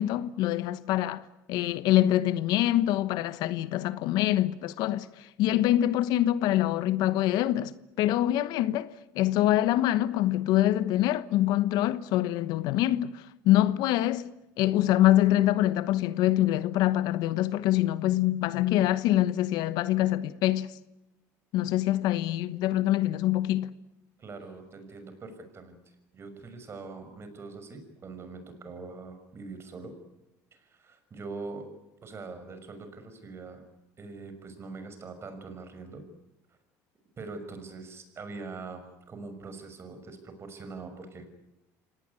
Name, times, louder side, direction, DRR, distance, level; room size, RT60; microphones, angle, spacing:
voice 1, 0.0-8.9 9.1-20.7 21.5-23.7, left 14 dB, 70° left, 1.1 m, -25 dB
voice 2, 24.2-29.9 30.5-31.7 32.0-33.6 34.0-36.0 37.2-41.3, right 3 dB, 35° right, 6.2 m, -43 dB
26.0 x 18.5 x 9.7 m
supercardioid pair, 90°, 7 cm